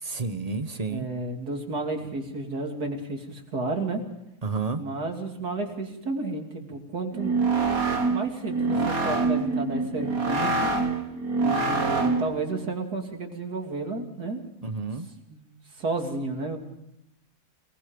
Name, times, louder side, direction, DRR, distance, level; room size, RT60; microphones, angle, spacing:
voice 1, 0.0-1.1 4.4-4.8 14.6-15.1, right 4 dB, 25° right, 9 dB, 1.1 m, -30 dB
voice 2, 0.9-4.0 4.8-7.5 8.1-10.7 11.4-14.4 15.3-15.4 15.7-16.6, right 3 dB, 80° right, 3 dB, 3.3 m, -32 dB
sound 1, 7.1-12.4, right 3 dB, 65° right, 2.3 m, -25 dB
29.0 x 19.5 x 5.2 m, 0.82 s
omnidirectional pair, 1.7 m